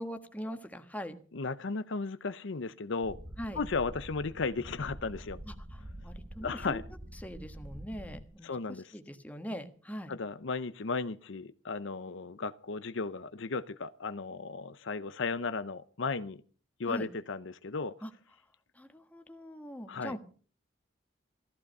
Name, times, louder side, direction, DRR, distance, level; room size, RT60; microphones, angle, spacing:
voice 1, 0.0-1.1 3.4-3.6 5.4-6.8 7.1-8.5 8.9-10.1 16.9-17.1 18.0-18.1 18.7-20.2, equal, 10° left, 6 dB, 1.5 m, -41 dB
voice 2, 1.3-3.2 3.6-5.4 6.4-6.8 8.4-8.9 10.1-16.4 16.8-18.0 19.9-20.2, left 4 dB, 70° left, 13 dB, 0.7 m, -35 dB
sound 1, 3.0-8.2, right 1 dB, 25° right, 1.3 m, -46 dB
15.0 x 14.5 x 5.5 m, 0.43 s
head